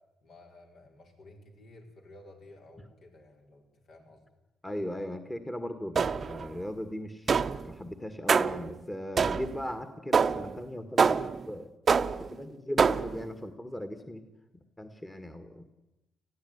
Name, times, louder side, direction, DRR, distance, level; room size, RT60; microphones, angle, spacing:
voice 1, 0.2-3.6 3.9-4.2, left 2 dB, 65° left, 1 dB, 5.4 m, -53 dB
voice 2, 4.6-11.7 12.3-14.2 14.8-15.7, left 1 dB, 10° left, 8 dB, 1.8 m, -38 dB
sound 1, 5.9-6.5 7.3-7.7 8.3-8.7 9.2-9.6 10.1-10.5 11.0-11.4 11.9-12.3 12.8-13.2, right 5 dB, 40° right, 0.8 m, -25 dB
19.0 x 15.0 x 9.6 m, 0.97 s
cardioid pair, 90°, 0 cm